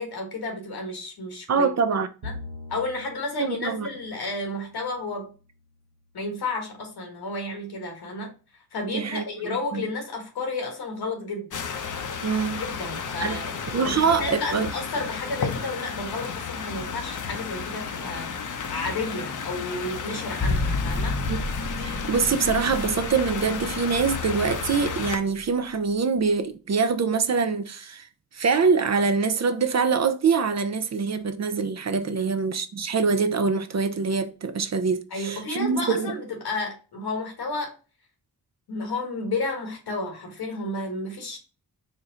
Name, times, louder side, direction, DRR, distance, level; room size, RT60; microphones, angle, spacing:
voice 1, 0.0-1.7 2.2-2.3 2.7-5.3 6.1-11.6 12.6-13.6 13.8-18.3 18.7-21.2 32.1-32.4 35.1-37.7 38.7-41.4, left 2 dB, 90° left, 1.3 m, -32 dB
voice 2, 1.5-2.1 3.4-3.9 8.9-9.9 12.2-12.6 13.2-13.4 13.7-14.7 21.3-21.4 21.8-28.1 28.3-36.2, right 5 dB, 45° right, 0.6 m, -24 dB
Bowed string instrument, 2.2-5.7, left 2 dB, 70° right, 0.9 m, -43 dB
sound 1, 11.5-25.2, left 6 dB, 55° left, 0.7 m, -33 dB
sound 2, 20.4-24.6 24.9-25.0, left 2 dB, 20° left, 0.7 m, -30 dB
4.1 x 2.1 x 3.7 m
cardioid pair, 50°, 37 cm